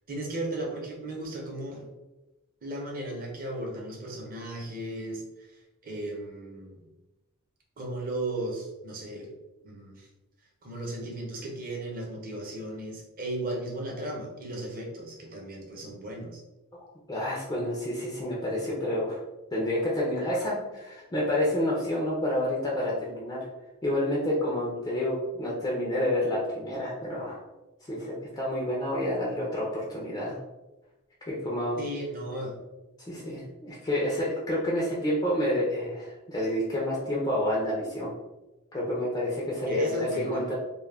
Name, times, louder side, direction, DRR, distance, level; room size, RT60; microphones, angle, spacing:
voice 1, 0.1-1.9 2.6-5.2 5.8-6.8 7.8-9.3 9.6-10.1 10.6-16.4 31.8-32.5 39.7-40.5, right 1 dB, 40° right, -1 dB, 0.6 m, -35 dB
voice 2, 16.7-19.2 19.5-23.5 23.8-27.4 27.8-30.4 31.3-31.8 33.1-38.1 38.7-40.5, left 1 dB, 20° left, -5 dB, 0.4 m, -29 dB
2.2 x 2.1 x 3.3 m, 1.0 s
head